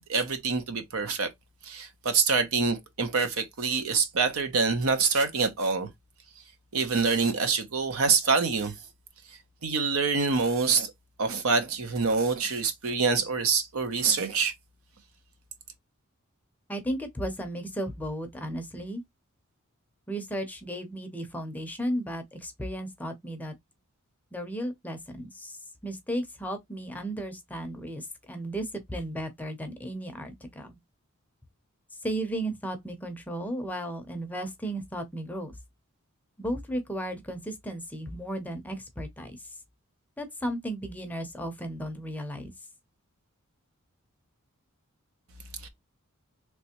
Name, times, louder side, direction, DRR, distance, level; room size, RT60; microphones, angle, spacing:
voice 1, 0.1-1.3 1.6-5.9 6.7-8.7 9.6-10.9 11.2-14.5 45.6-45.7, right 4 dB, 70° right, 0.7 m, -26 dB
voice 2, 16.7-19.0 20.1-23.5 24.3-25.6 25.8-30.8 32.0-35.5 36.4-39.4 40.2-42.5, right 1 dB, 10° left, 0.6 m, -34 dB
3.3 x 3.0 x 2.9 m
head